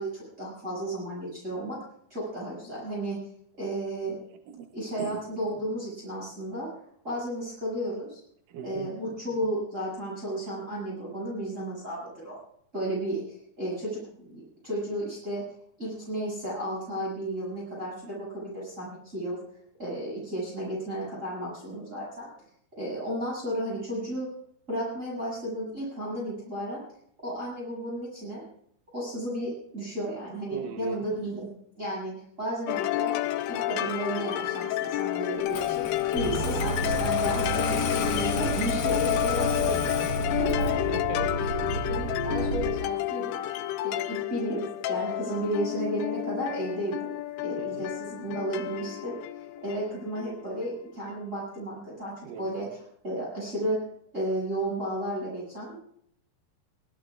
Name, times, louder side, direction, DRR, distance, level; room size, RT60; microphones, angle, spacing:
voice 1, 0.0-1.8 2.1-3.2 3.6-4.2 4.7-6.7 7.0-8.2 8.6-12.4 12.7-15.4 15.8-19.4 19.8-22.3 22.8-24.3 24.7-26.8 27.2-28.4 28.9-31.5 31.8-32.1 32.4-33.2 33.5-35.9 36.1-39.9 40.4-40.8 41.5-43.3 43.8-47.1 47.4-49.2 49.6-52.8 53.0-53.8 54.1-55.8, right 1 dB, 15° right, -6 dB, 7.8 m, -33 dB
voice 2, 4.3-4.7 5.0-5.2 8.5-8.9 30.5-31.1 39.7-40.3 40.9-41.4 42.3-42.6 47.6-47.9 52.2-52.7, right 6 dB, 70° right, 4 dB, 2.4 m, -39 dB
sound 1, 32.7-50.5, left 14 dB, 90° left, 2.8 m, -30 dB
Engine starting, 35.5-40.9, left 7 dB, 70° left, 2.8 m, -34 dB
sound 2, 36.1-42.7, right 4 dB, 45° right, 2.7 m, -32 dB
23.0 x 18.5 x 2.5 m, 0.65 s
omnidirectional pair, 4.6 m